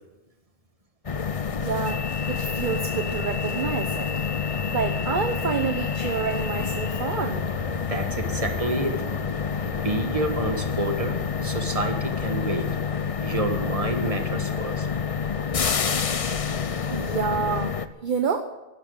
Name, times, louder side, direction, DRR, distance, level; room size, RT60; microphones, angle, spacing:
sound 1, 1.0-17.9, left 6 dB, 40° left, 0.6 m, -28 dB
voice 1, 1.6-4.1 4.7-7.5 16.9-18.4, right 6 dB, 45° right, 7 dB, 1.1 m, -28 dB
Fixed-wing aircraft airplane, 3.9-17.4, equal, 5° left, 4.2 m, -44 dB
voice 2, 7.9-9.0 9.6-11.2 11.4-12.7 13.2-14.9, right 2 dB, 30° right, 6 dB, 1.8 m, -28 dB
12.0 x 12.0 x 9.5 m, 1.1 s
omnidirectional pair, 1.3 m